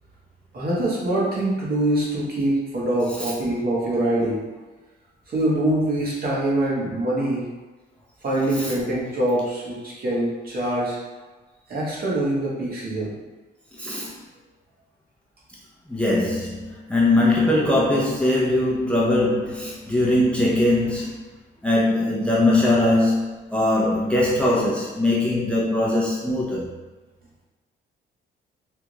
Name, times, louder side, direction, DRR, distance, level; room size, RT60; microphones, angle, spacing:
voice 1, 0.5-4.4 5.3-7.4 8.2-11.0 11.7-13.1, right 1 dB, 50° right, -5 dB, 1.2 m, -24 dB
voice 2, 13.7-14.2 15.9-21.2 21.6-26.7, left 1 dB, 5° left, -6 dB, 0.7 m, -21 dB
3.5 x 2.4 x 3.0 m, 1.2 s
cardioid pair, 90°, 20 cm